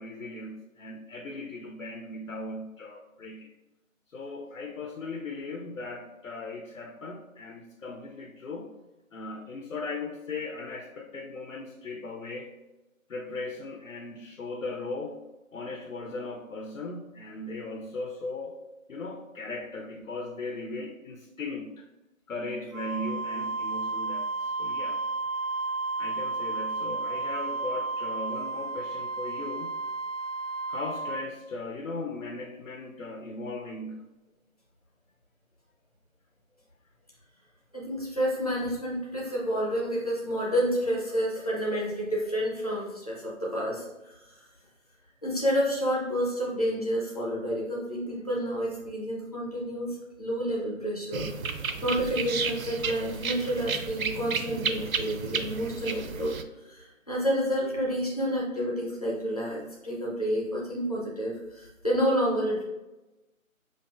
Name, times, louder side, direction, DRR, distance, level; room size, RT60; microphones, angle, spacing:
voice 1, 0.0-3.5 4.1-8.7 9.1-12.6 13.1-15.2 15.5-21.9 22.3-25.0 26.0-29.7 30.7-34.1, left 2 dB, 70° left, 4 dB, 0.6 m, -38 dB
Wind instrument woodwind instrument, 22.7-31.3, right 3 dB, ahead, 0.3 m, -32 dB
voice 2, 37.7-44.5 45.2-51.3 51.8-56.3 56.6-62.6, equal, 30° left, -5 dB, 0.7 m, -29 dB
sound 1, 51.1-56.4, right 5 dB, 80° right, 0.5 m, -32 dB
5.4 x 2.6 x 2.3 m, 1.1 s
figure-of-eight pair, 155°, 41 cm